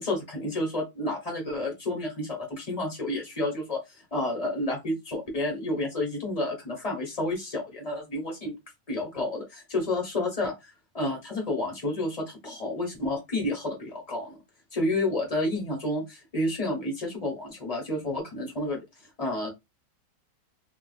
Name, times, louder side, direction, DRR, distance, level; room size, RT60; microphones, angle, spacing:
voice 1, 0.0-3.8 4.1-8.5 8.9-14.4 14.7-18.8 19.2-19.5, left 1 dB, 25° left, 0 dB, 1.1 m, -30 dB
3.7 x 2.5 x 2.3 m, 0.21 s
omnidirectional pair, 1.9 m